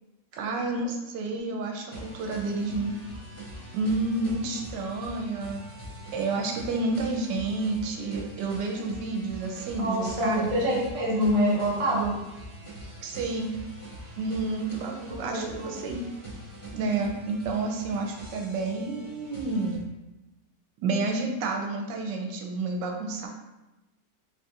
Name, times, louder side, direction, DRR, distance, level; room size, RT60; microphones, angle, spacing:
voice 1, 0.4-2.9 3.7-5.6 6.1-10.5 13.0-13.5 14.2-16.0 16.7-19.8 20.8-23.3, right 3 dB, 85° right, 2 dB, 1.2 m, -30 dB
sound 1, 1.9-19.8, equal, 30° left, 0.6 m, -43 dB
voice 2, 9.8-12.1 15.2-15.7, equal, 50° right, -5 dB, 0.4 m, -26 dB
3.5 x 2.4 x 2.7 m, 1.0 s
omnidirectional pair, 1.9 m